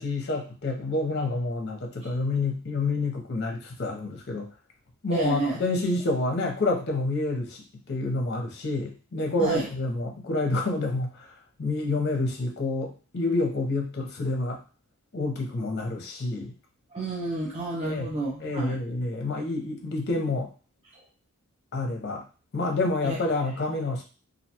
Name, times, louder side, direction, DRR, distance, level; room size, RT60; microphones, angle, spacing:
voice 1, 0.0-4.5 5.0-7.6 7.9-11.1 11.6-14.6 15.1-16.5 17.8-18.1 18.4-20.5 21.7-22.2 22.5-24.0, left 2 dB, 50° left, 2 dB, 0.6 m, -28 dB
voice 2, 5.1-5.6 9.4-9.7 16.9-18.8 23.0-23.2, right 2 dB, 25° right, -4 dB, 0.5 m, -30 dB
2.4 x 2.2 x 2.8 m, 0.35 s
head